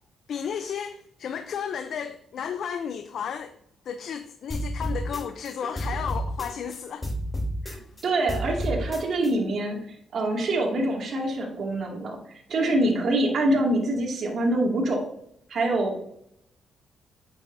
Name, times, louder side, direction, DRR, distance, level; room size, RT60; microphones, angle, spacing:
voice 1, 0.3-3.5 3.9-7.0 12.6-12.8, left 7 dB, 65° left, 8 dB, 0.6 m, -33 dB
sound 1, 4.5-6.8 7.0-9.3, equal, 20° left, 3.3 m, -30 dB
voice 2, 8.0-9.8 10.1-12.2 12.5-15.0 15.5-16.1, right 1 dB, 55° right, -1 dB, 2.4 m, -25 dB
8.9 x 7.7 x 2.7 m, 0.72 s
cardioid pair, 90°, 0 cm